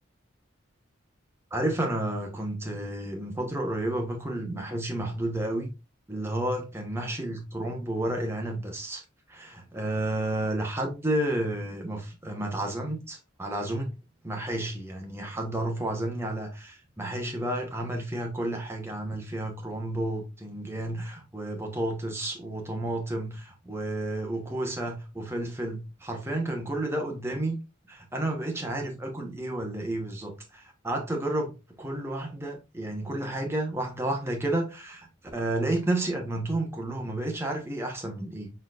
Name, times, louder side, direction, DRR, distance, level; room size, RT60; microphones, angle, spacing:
voice 1, 1.5-5.7 6.1-13.9 14.2-27.6 27.9-38.5, right 1 dB, 15° right, 1.1 m, -31 dB
4.3 x 4.0 x 2.4 m
head